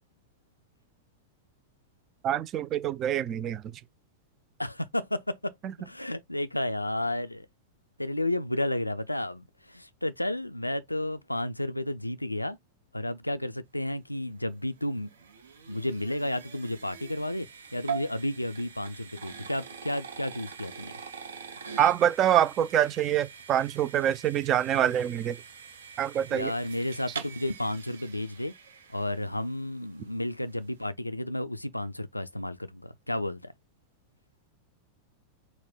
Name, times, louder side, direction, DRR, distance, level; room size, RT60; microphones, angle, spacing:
voice 1, 2.2-3.6 21.8-25.4 26.0-26.5, right 10 dB, 30° right, 0.4 m, -25 dB
voice 2, 4.6-5.5 5.8-7.5 8.0-12.6 12.9-15.1 15.7-17.5 17.7-21.0 26.3-28.5 28.9-33.5, left 1 dB, 85° left, 0.4 m, -32 dB
sound 1, 14.4-29.6, right 6 dB, 65° right, 0.8 m, -43 dB
4.1 x 2.2 x 4.2 m
figure-of-eight pair, 90°, 0 cm